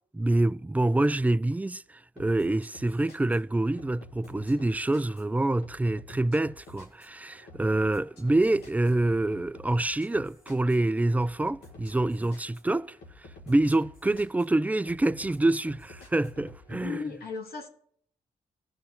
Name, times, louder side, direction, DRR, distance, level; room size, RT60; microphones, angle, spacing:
voice 1, 0.1-17.0, right 2 dB, 10° right, 0.3 m, -26 dB
sound 1, 2.2-16.9, left 2 dB, 85° left, 2.0 m, -51 dB
voice 2, 16.7-17.7, left 5 dB, 70° left, 1.9 m, -36 dB
16.0 x 5.5 x 3.8 m
supercardioid pair, 45°, 16 cm